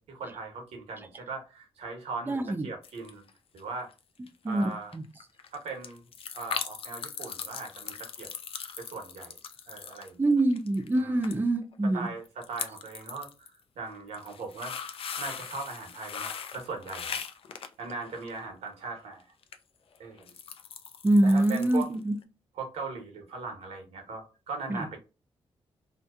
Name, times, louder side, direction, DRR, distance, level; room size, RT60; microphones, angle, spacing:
voice 1, 0.0-3.2 3.5-3.9 4.5-4.9 5.5-6.0 6.3-8.3 8.8-9.3 9.7-10.2 10.9-11.3 11.8-14.8 15.2-17.2 17.8-19.3 20.0-20.3 21.2-21.9 22.6-25.0, right 4 dB, 85° right, 0.8 m, -39 dB
voice 2, 2.3-2.7 4.4-5.0 10.2-12.1 21.0-22.1 24.7-24.9, right 1 dB, 20° right, 0.5 m, -25 dB
sound 1, 2.8-3.3 3.6-4.0 4.3-4.4 4.6-4.7 4.9-11.0 11.2-11.4 11.6-11.7 12.3-13.5 14.0-18.4 19.4-19.6 20.0-22.0 22.2-22.3, left 7 dB, 65° left, 0.4 m, -39 dB
2.7 x 2.0 x 2.3 m
cardioid pair, 65°, 10 cm